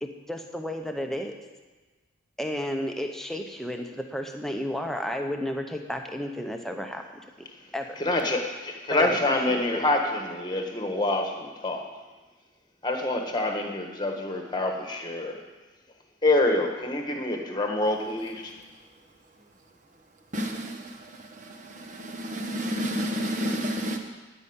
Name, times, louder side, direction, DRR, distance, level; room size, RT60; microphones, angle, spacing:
voice 1, 0.0-1.3 2.4-7.5 7.7-7.9 8.9-9.2 9.5-9.8, equal, ahead, 3 dB, 0.9 m, -32 dB
voice 2, 8.0-11.8 12.8-15.4 16.2-18.5, left 2 dB, 20° left, 3 dB, 1.4 m, -26 dB
voice 3, 20.3-24.0, equal, 40° right, 3 dB, 1.3 m, -31 dB
12.5 x 5.6 x 8.8 m, 1.3 s
head